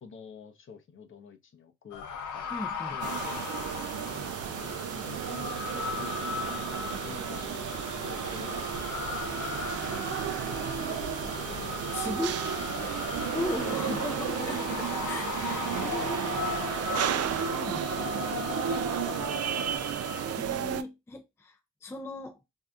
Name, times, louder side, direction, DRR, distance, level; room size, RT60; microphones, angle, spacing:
voice 1, 0.0-2.6 2.9-3.2 4.5-6.2 6.5-7.5 8.0-8.9 9.3-12.4 12.7-12.9 13.6-14.1 18.3-19.8, left 6 dB, 45° left, 0.8 m, -49 dB
sound 1, 1.9-20.4, left 6 dB, 75° left, 0.7 m, -37 dB
voice 2, 2.5-3.0 11.9-13.0 13.3-17.9 20.4-22.4, left 2 dB, 10° left, 0.5 m, -38 dB
sound 2, 3.0-20.8, right 10 dB, 55° right, 0.5 m, -33 dB
2.7 x 2.3 x 3.4 m
cardioid pair, 90°, 30 cm